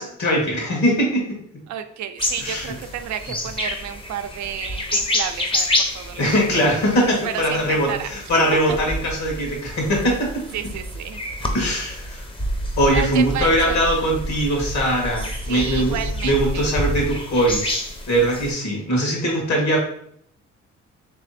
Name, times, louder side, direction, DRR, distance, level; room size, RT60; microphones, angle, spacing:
voice 1, 0.0-1.4 2.4-2.7 6.2-10.4 11.5-12.2 12.8-16.0 16.2-19.8, equal, 65° left, -1 dB, 1.8 m, -21 dB
voice 2, 1.7-5.7 5.9-6.3 6.6-6.7 7.2-8.1 8.5-8.6 10.5-11.2 12.9-13.8 15.5-16.6, right 9 dB, 70° right, 8 dB, 0.5 m, -31 dB
sound 1, 2.2-18.5, left 1 dB, 15° left, 0.8 m, -28 dB
3.4 x 3.2 x 4.2 m, 0.68 s
cardioid pair, 90°, 30 cm